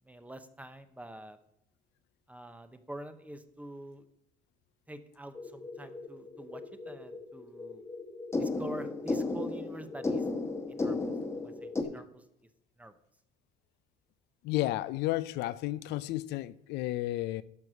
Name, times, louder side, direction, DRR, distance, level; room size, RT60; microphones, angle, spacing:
voice 1, 0.1-1.4 2.3-4.1 4.9-7.8 8.4-10.3 10.7-12.2 12.8-12.9, right 1 dB, 10° right, 0.8 m, -46 dB
sound 1, 5.3-11.8, left 3 dB, 15° left, 1.2 m, -35 dB
voice 2, 14.4-17.4, left 16 dB, 85° left, 0.5 m, -32 dB
12.0 x 4.8 x 6.2 m
cardioid pair, 110°, 17 cm